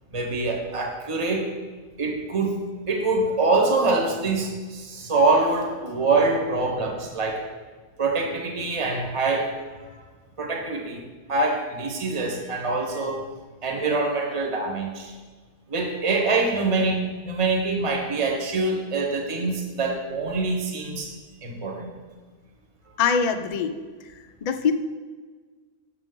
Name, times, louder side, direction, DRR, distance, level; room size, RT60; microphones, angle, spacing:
voice 1, 0.1-1.5 2.0-7.4 8.0-9.9 10.4-11.0 11.3-13.2 13.6-15.1 15.7-21.1 21.4-21.9, right 3 dB, 30° right, 1 dB, 0.9 m, -25 dB
voice 2, 23.0-23.7 24.1-24.7, left 6 dB, 60° left, 7 dB, 0.4 m, -24 dB
6.6 x 6.2 x 3.7 m, 1.4 s
omnidirectional pair, 1.1 m